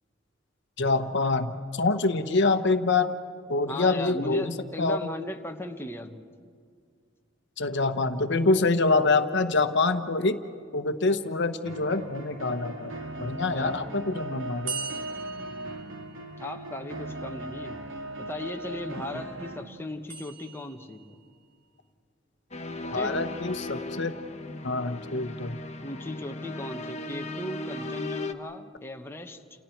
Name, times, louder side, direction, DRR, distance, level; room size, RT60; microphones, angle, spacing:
voice 1, 0.8-3.2 3.5-5.0 7.6-10.4 10.7-12.9 13.2-14.7 22.9-24.1 24.6-25.6, left 3 dB, 65° left, 9 dB, 1.1 m, -25 dB
voice 2, 3.7-6.3 13.5-14.0 16.4-17.9 18.2-21.2 22.9-23.1 25.8-29.4, left 1 dB, 10° left, 4 dB, 1.1 m, -37 dB
sound 1, 11.6-19.7, right 1 dB, 85° right, 2.6 m, -38 dB
sound 2, 14.7-16.6 20.1-21.1, right 6 dB, 70° right, 2.6 m, -39 dB
sound 3, 22.5-28.3, left 2 dB, 35° left, 1.1 m, -37 dB
30.0 x 29.0 x 4.6 m, 2.1 s
head